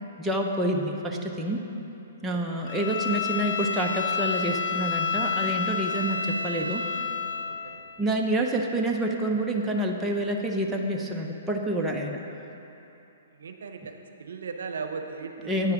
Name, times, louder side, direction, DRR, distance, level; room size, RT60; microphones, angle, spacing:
voice 1, 0.2-1.6 2.2-6.9 8.0-12.2 15.5-15.7, right 1 dB, 10° right, 0 dB, 0.7 m, -27 dB
voice 2, 2.3-2.7 6.1-6.2 7.5-7.8 13.4-15.5, right 5 dB, 75° right, 6 dB, 0.7 m, -38 dB
Bowed string instrument, 2.7-7.5, left 6 dB, 65° left, 0.8 m, -29 dB
9.5 x 4.8 x 7.1 m, 2.9 s
hypercardioid pair, 135°, 0 cm